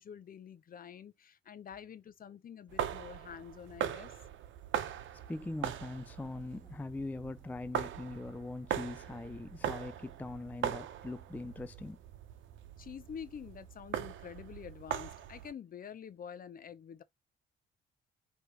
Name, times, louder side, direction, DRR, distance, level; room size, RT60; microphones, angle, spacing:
voice 1, 0.0-4.1 12.8-17.0, left 8 dB, 45° left, 0.7 m, -47 dB
sound 1, 2.7-15.5, right 10 dB, 75° right, 0.8 m, -40 dB
voice 2, 5.3-12.0, left 2 dB, 10° left, 0.3 m, -41 dB
4.7 x 3.0 x 2.9 m
cardioid pair, 90°, 20 cm